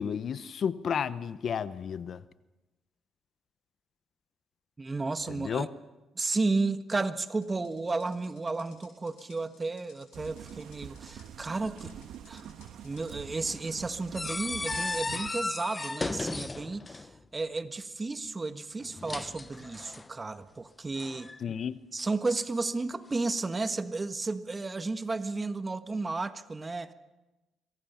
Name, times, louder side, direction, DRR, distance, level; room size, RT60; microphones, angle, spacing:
voice 1, 0.0-2.2 5.3-5.7 21.4-21.8, left 7 dB, 60° left, 15 dB, 0.9 m, -32 dB
voice 2, 4.8-5.7 6.1-12.4 12.8-21.3 21.9-26.9, right 3 dB, 30° right, 10 dB, 1.5 m, -33 dB
sound 1, 7.4-15.0, left 8 dB, 90° left, 7.3 m, -61 dB
sound 2, 10.1-15.3, right 9 dB, 75° right, 1.4 m, -45 dB
sound 3, 14.2-17.2 18.8-20.1 21.0-21.4, left 3 dB, 25° left, 0.7 m, -35 dB
27.0 x 23.5 x 5.8 m, 1.1 s
supercardioid pair, 65°, 0 cm